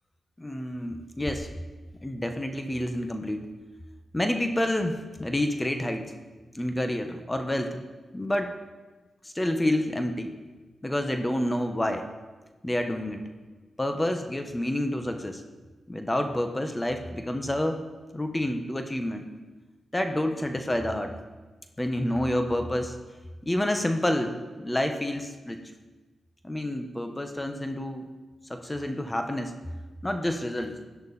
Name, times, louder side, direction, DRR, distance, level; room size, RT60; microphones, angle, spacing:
voice 1, 0.4-1.5 2.0-3.5 4.1-6.1 6.5-7.8 8.1-8.5 9.2-10.3 10.8-12.1 12.6-13.3 13.8-15.4 15.9-17.9 18.1-19.3 19.9-21.2 21.8-23.0 23.4-25.6 26.4-28.0 28.5-29.5 30.0-30.9, left 1 dB, 15° left, 6 dB, 1.3 m, -28 dB
17.0 x 10.5 x 4.3 m, 1.3 s
cardioid pair, 75°, 0 cm